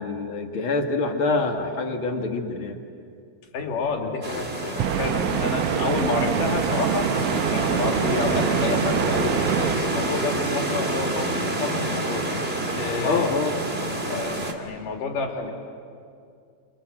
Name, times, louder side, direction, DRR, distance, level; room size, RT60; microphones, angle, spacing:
voice 1, 0.0-2.8 13.0-13.6, left 3 dB, 45° left, 3 dB, 2.1 m, -25 dB
voice 2, 3.5-7.2 7.5-12.3 12.7-13.3 13.9-15.5, left 4 dB, 65° left, 2 dB, 4.0 m, -29 dB
sound 1, 4.2-14.5, right 2 dB, 25° right, 1.5 m, -27 dB
sound 2, 4.8-9.8, right 10 dB, 80° right, 1.6 m, -26 dB
27.5 x 25.0 x 7.8 m, 2.4 s
omnidirectional pair, 4.3 m